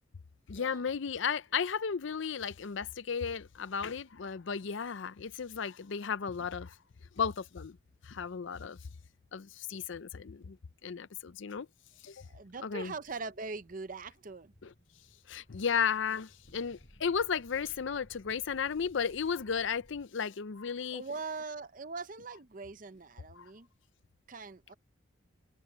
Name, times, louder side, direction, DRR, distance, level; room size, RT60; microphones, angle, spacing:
voice 1, 0.5-6.7 7.2-7.8 8.0-8.8 9.3-10.6 10.8-11.7 12.0-12.3 12.6-12.9 14.6-14.7 15.3-21.0 23.4-23.5, left 6 dB, 65° left, 0.5 m, -34 dB
sound 1, 11.9-20.1, equal, 45° left, 7.6 m, -61 dB
voice 2, 12.2-14.5 20.9-23.7 24.3-24.7, right 4 dB, 40° right, 0.7 m, -42 dB
head